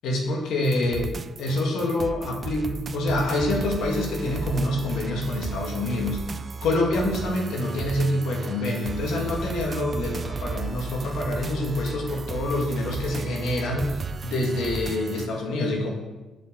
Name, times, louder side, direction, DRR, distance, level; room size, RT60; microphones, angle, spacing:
voice 1, 0.0-6.2 6.6-14.0 14.2-15.9, left 1 dB, 80° left, 0 dB, 2.2 m, -26 dB
sound 1, 0.6-15.3, right 5 dB, 40° right, 0.4 m, -34 dB
7.7 x 6.9 x 7.7 m, 1.1 s
cardioid pair, 90°, 0 cm